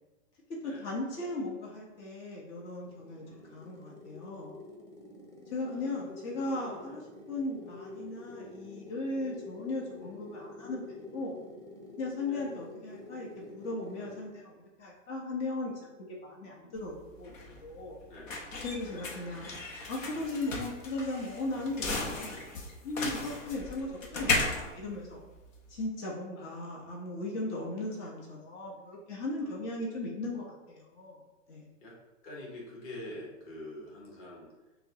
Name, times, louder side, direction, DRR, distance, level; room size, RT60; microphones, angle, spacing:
voice 1, 0.5-4.6 5.5-11.4 12.0-15.7 16.0-18.0 18.6-19.5 19.9-22.4 22.8-25.2 25.7-31.2 31.5-31.6, left 2 dB, 60° left, -3 dB, 1.2 m, -37 dB
sound 1, 2.6-14.3, left 2 dB, 10° left, 0.5 m, -47 dB
voice 2, 3.2-3.5 5.6-6.0 6.8-7.0 10.0-10.2 12.2-12.6 16.4-16.8 18.1-18.4 18.9-19.1 22.2-22.5 23.5-24.3 26.3-27.0 29.4-29.8 31.8-34.5, left 1 dB, 35° left, -4 dB, 1.3 m, -48 dB
sound 2, 16.8-25.8, left 3 dB, 90° left, 1.0 m, -36 dB
6.0 x 2.3 x 2.9 m, 1.1 s
hypercardioid pair, 130°, 38 cm